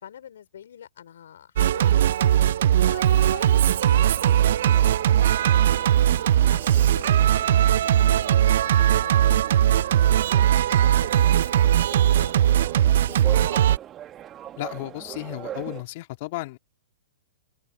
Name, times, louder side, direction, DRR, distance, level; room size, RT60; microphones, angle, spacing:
voice 1, 0.0-5.0 5.5-10.3 10.7-13.6, left 9 dB, 70° left, 4.8 m, -45 dB
Singing, 1.6-13.8, right 11 dB, 65° right, 0.5 m, -19 dB
sound 1, 4.1-15.8, right 11 dB, 25° right, 1.5 m, -41 dB
voice 2, 14.6-16.6, left 20 dB, 50° left, 2.2 m, -34 dB
open air
hypercardioid pair, 120°, 0 cm